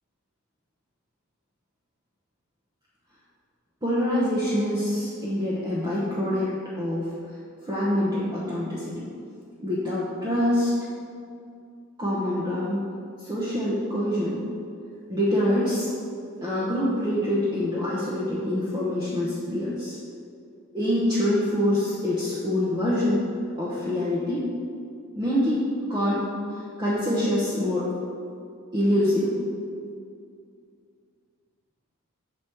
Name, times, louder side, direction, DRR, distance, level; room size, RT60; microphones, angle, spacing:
voice 1, 3.8-6.5 6.8-7.1 7.7-9.1 9.6-10.7 12.0-12.8 13.2-14.4 15.1-15.9 16.4-20.0 20.7-23.2 23.6-24.4 25.1-25.5 25.9-26.2 26.5-27.8 28.7-29.3, left 1 dB, 20° right, -9 dB, 0.8 m, -25 dB
6.1 x 4.0 x 4.5 m, 2.4 s
head